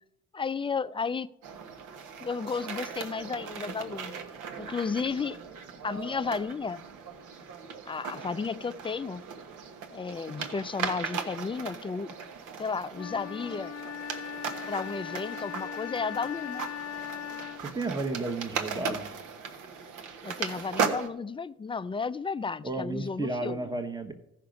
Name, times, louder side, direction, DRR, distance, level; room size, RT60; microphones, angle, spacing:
voice 1, 0.3-1.3 2.2-4.2 4.6-5.4 5.8-6.8 7.9-9.2 9.9-12.1 12.6-13.7 14.7-16.7 20.2-23.7, left 5 dB, 20° left, 0.3 m, -33 dB
sound 1, 1.4-21.1, right 6 dB, 85° right, 1.2 m, -38 dB
Wind instrument woodwind instrument, 12.9-17.8, left 10 dB, 55° left, 0.7 m, -39 dB
voice 2, 17.6-19.1 22.6-24.1, right 2 dB, 15° right, 1.0 m, -33 dB
14.0 x 5.8 x 5.2 m
cardioid pair, 90°, 30 cm